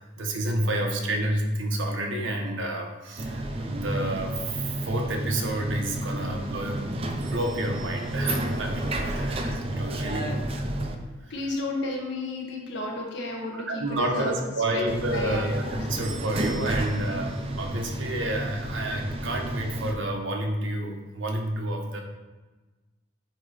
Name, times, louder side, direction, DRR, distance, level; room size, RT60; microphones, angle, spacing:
voice 1, 0.0-6.8 7.3-10.7 11.2-11.3 13.5-22.0, right 1 dB, 75° right, 2 dB, 1.1 m, -30 dB
sound 1, 3.2-11.0 14.9-19.9, right 1 dB, 30° right, 0.5 m, -31 dB
voice 2, 11.3-15.9, left 2 dB, 65° left, -1 dB, 1.4 m, -33 dB
8.8 x 3.1 x 4.9 m, 1.2 s
head